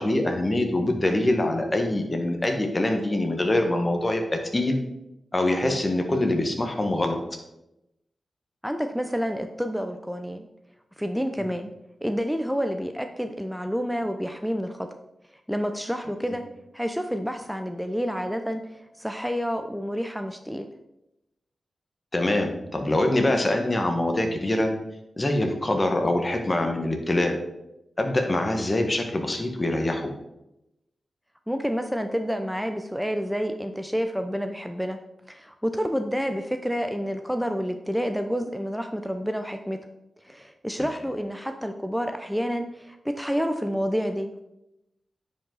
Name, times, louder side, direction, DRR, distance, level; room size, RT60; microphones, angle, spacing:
voice 1, 0.0-4.8 5.3-7.2 22.1-24.7 25.2-27.3 28.0-30.1, left 1 dB, 30° left, 4 dB, 1.5 m, -24 dB
voice 2, 8.6-10.5 11.0-11.7 12.0-14.9 15.5-16.4 16.7-20.7 31.5-35.0 35.3-39.8 40.2-44.4, equal, ahead, 6 dB, 0.6 m, -29 dB
9.6 x 5.5 x 3.9 m, 0.89 s
cardioid pair, 65°, 0 cm